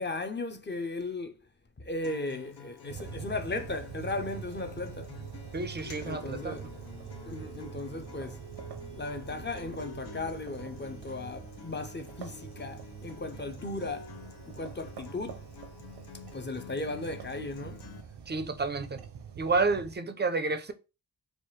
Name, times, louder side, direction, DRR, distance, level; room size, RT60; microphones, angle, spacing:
voice 1, 0.0-1.4 1.8-5.2 6.0-6.7 7.3-8.4 8.9-14.1 14.5-15.4 16.3-17.9, left 2 dB, 30° left, 0.5 m, -36 dB
Acoustic guitar, 2.0-18.0, left 6 dB, 85° left, 0.7 m, -49 dB
sound 1, 2.9-19.9, right 7 dB, 85° right, 0.6 m, -45 dB
voice 2, 5.5-6.6 18.3-19.0 19.4-20.7, right 3 dB, 30° right, 0.4 m, -30 dB
4.3 x 2.3 x 3.1 m
wide cardioid pair, 100°, 39 cm